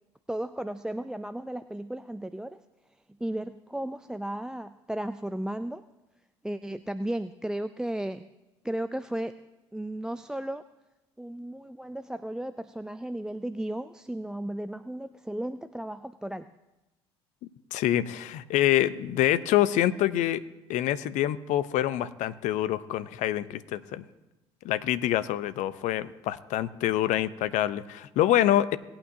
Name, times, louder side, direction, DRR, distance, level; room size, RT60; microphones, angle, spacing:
voice 1, 0.3-2.6 3.2-5.8 6.4-8.2 8.6-9.3 9.7-10.6 11.2-16.5, right 1 dB, 5° right, 13 dB, 0.4 m, -34 dB
voice 2, 17.7-20.4 20.7-24.0 24.6-28.8, left 13 dB, 60° left, 15 dB, 0.6 m, -26 dB
19.0 x 8.8 x 2.7 m, 1.0 s
hypercardioid pair, 55°, 14 cm